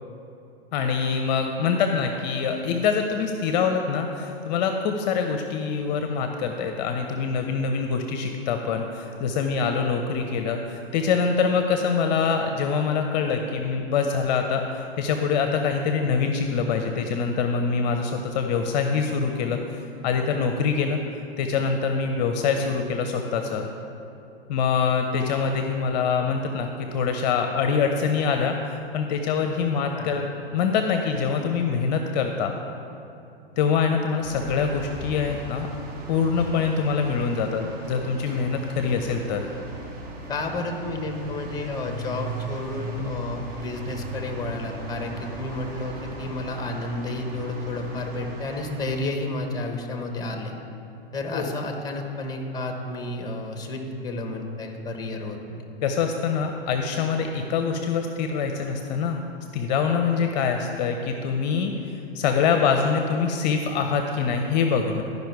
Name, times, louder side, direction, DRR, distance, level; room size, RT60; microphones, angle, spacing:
voice 1, 0.7-21.0 21.4-23.7 24.5-30.2 30.5-32.5 33.6-35.7 36.1-39.4 51.3-51.5 55.8-59.2 59.5-65.0, left 5 dB, 45° left, 5 dB, 0.7 m, -24 dB
sound 1, 34.2-49.0, right 2 dB, 30° right, 1.2 m, -38 dB
voice 2, 40.3-50.5 51.1-55.6, left 2 dB, 15° left, 4 dB, 1.1 m, -31 dB
12.0 x 5.3 x 4.6 m, 2.8 s
hypercardioid pair, 110°, 30 cm